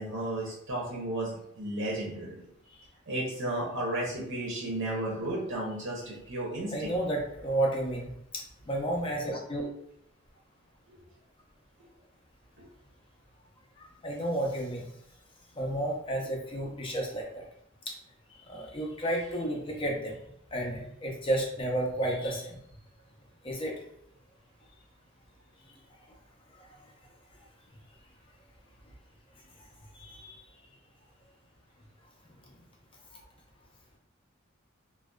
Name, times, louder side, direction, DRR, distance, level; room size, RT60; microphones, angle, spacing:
voice 1, 0.0-2.4 3.1-6.9 10.9-11.0, right 1 dB, 65° right, -3 dB, 0.6 m, -33 dB
voice 2, 6.7-9.7 13.8-14.9 15.6-17.4 17.9-18.0 18.5-20.2 20.5-22.6 23.4-23.8 29.9-30.4, right 1 dB, 25° left, 0 dB, 0.5 m, -32 dB
2.5 x 2.2 x 2.2 m, 0.75 s
head